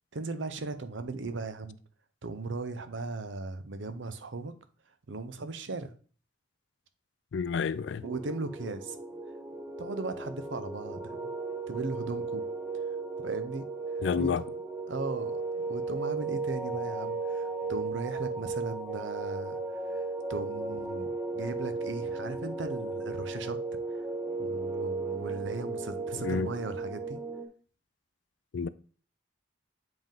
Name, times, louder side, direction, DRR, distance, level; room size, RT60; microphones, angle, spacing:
voice 1, 0.1-1.8 2.2-4.5 5.1-5.9 8.0-9.0 9.8-11.3 11.7-12.4 13.2-13.6 14.2-14.3 14.9-20.0 20.3-23.6 23.9-24.1 24.4-27.2, right 3 dB, 80° right, 0.7 m, -37 dB
voice 2, 7.3-8.0 14.0-14.4 26.2-26.5 28.5-28.7, left 5 dB, 70° left, 0.4 m, -29 dB
sound 1, 8.0-27.5, right 3 dB, 10° right, 0.7 m, -35 dB
7.8 x 3.6 x 3.6 m
head